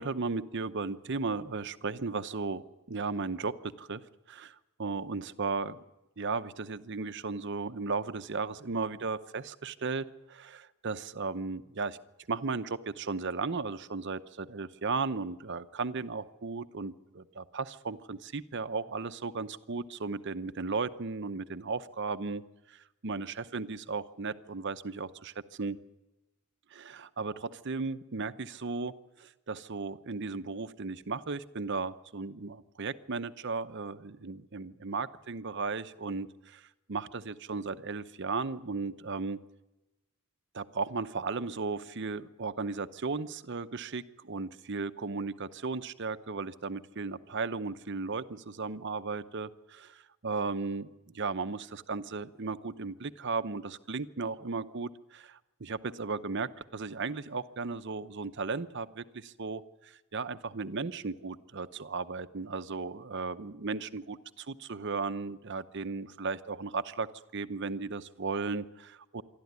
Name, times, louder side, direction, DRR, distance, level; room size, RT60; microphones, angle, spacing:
voice 1, 0.0-4.0 4.3-5.8 6.2-12.0 12.3-22.4 22.7-25.3 25.6-25.8 26.7-28.9 29.2-39.4 40.5-67.1 67.3-69.2, right 4 dB, 55° right, 12 dB, 0.8 m, -35 dB
26.0 x 12.0 x 9.5 m, 1.0 s
head